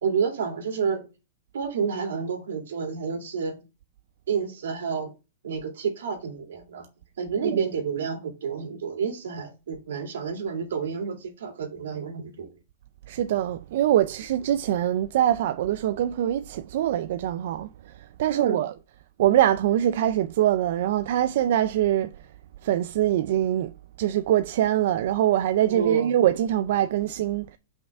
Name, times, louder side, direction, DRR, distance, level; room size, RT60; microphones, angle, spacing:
voice 1, 0.0-1.1 1.5-3.6 4.3-5.1 5.4-6.9 7.2-12.6 18.3-18.7 25.7-26.2, right 6 dB, 85° right, 2.4 m, -29 dB
voice 2, 13.1-18.8 19.2-22.1 22.6-23.7 24.0-27.6, right 12 dB, 60° right, 0.4 m, -23 dB
5.8 x 5.4 x 3.4 m
hypercardioid pair, 145°, 0 cm